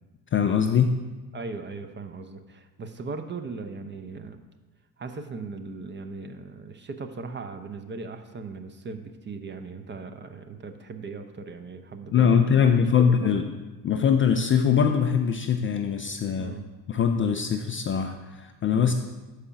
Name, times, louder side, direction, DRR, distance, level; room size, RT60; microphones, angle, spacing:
voice 1, 0.3-0.9 12.1-13.4 13.8-16.5 16.9-18.9, left 7 dB, 25° left, 5 dB, 0.4 m, -22 dB
voice 2, 1.3-4.4 5.0-13.4 16.4-16.6 18.7-18.9, right 4 dB, 25° right, 8 dB, 0.5 m, -38 dB
6.0 x 4.9 x 5.6 m, 1.2 s
hypercardioid pair, 65°, 50 cm